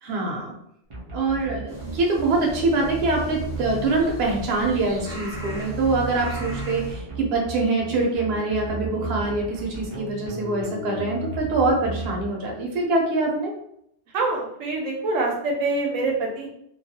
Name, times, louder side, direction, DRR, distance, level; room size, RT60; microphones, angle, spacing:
voice 1, 0.0-0.5 1.1-13.5, right 3 dB, 60° right, 0 dB, 0.8 m, -24 dB
sound 1, 0.9-12.8, right 3 dB, 40° right, 0.5 m, -35 dB
sound 2, 1.7-6.9, equal, 20° left, 0.7 m, -37 dB
voice 2, 14.1-16.5, right 3 dB, 90° right, 0 dB, 1.0 m, -25 dB
2.3 x 2.3 x 2.6 m, 0.73 s
omnidirectional pair, 1.3 m